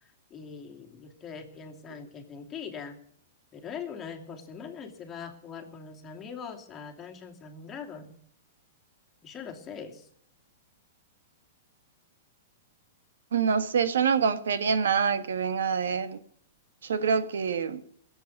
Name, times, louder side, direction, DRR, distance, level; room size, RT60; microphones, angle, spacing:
voice 1, 0.0-3.0 3.5-8.2 9.2-10.1, left 6 dB, 20° left, 2.6 m, -42 dB
voice 2, 13.3-16.2 16.8-17.8, right 6 dB, 85° right, 1.3 m, -26 dB
18.5 x 8.0 x 9.3 m
hypercardioid pair, 140°, 0 cm